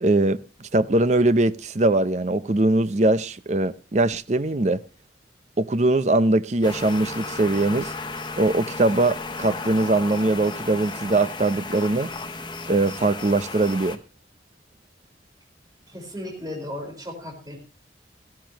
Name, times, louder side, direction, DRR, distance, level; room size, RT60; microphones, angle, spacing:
voice 1, 0.0-4.8 5.6-7.9 8.4-12.1 12.7-14.0, right 2 dB, 40° right, 0.6 m, -21 dB
sound 1, 6.6-14.0, left 3 dB, 25° left, 1.1 m, -34 dB
voice 2, 15.9-17.6, left 1 dB, 20° right, 4.7 m, -35 dB
16.0 x 15.5 x 2.9 m
head